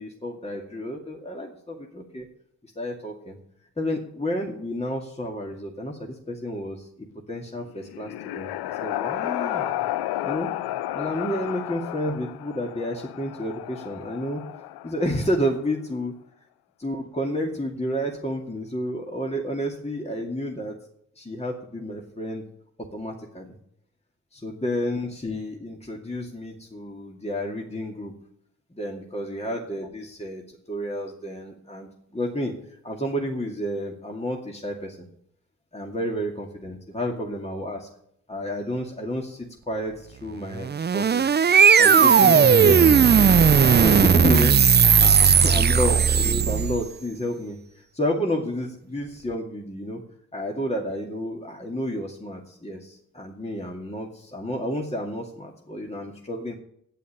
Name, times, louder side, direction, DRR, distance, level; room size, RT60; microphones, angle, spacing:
voice 1, 0.0-2.3 2.8-3.4 3.8-8.5 8.8-9.8 10.2-10.5 10.9-14.4 14.8-16.1 16.8-20.8 21.2-22.4 22.9-23.5 24.3-28.1 28.7-32.5 32.8-35.0 35.7-37.9 38.3-41.3 41.8-43.5 43.8-44.6 45.0-50.0 50.3-56.5, equal, 15° left, 0 dB, 2.2 m, -30 dB
sound 1, 7.6-15.5, left 14 dB, 85° left, 0.5 m, -32 dB
sound 2, 40.6-46.9, right 6 dB, 30° right, 0.5 m, -16 dB
9.1 x 8.5 x 8.8 m, 0.74 s
supercardioid pair, 45°, 37 cm